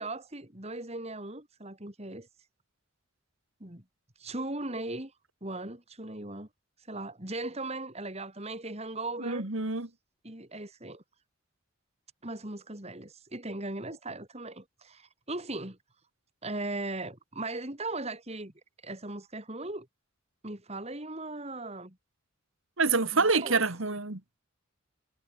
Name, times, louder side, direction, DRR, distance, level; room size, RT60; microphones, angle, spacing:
voice 1, 0.0-2.3 3.6-3.8 4.2-5.1 5.4-6.5 6.8-9.5 10.2-11.0 12.2-15.8 16.4-18.5 18.8-19.9 20.4-22.0 23.1-23.7, right 2 dB, 30° right, 3.3 m, -38 dB
voice 2, 9.2-9.9 22.8-24.2, right 4 dB, 75° right, 2.2 m, -27 dB
head